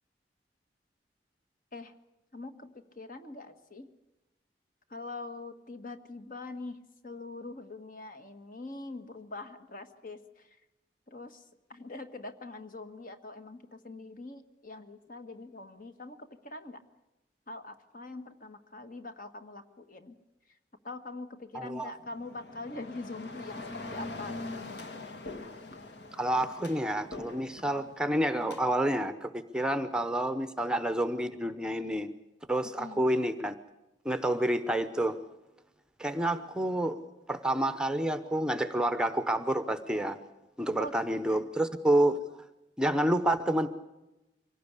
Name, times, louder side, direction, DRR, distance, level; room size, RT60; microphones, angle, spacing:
voice 1, 2.3-3.9 4.9-6.8 7.0-10.5 11.1-11.4 11.7-16.8 17.5-20.1 20.8-24.4 32.8-33.1 40.8-40.9 41.3-41.4, left 2 dB, 50° left, 8 dB, 1.7 m, -43 dB
voice 2, 21.5-21.9 26.1-32.1 32.5-33.6 34.0-35.2 36.0-37.0 37.3-40.2 40.6-42.2 42.8-43.7, right 1 dB, 5° right, 10 dB, 0.8 m, -29 dB
sound 1, 22.0-28.6, left 2 dB, 65° left, 2.1 m, -43 dB
24.0 x 17.5 x 8.3 m, 0.99 s
head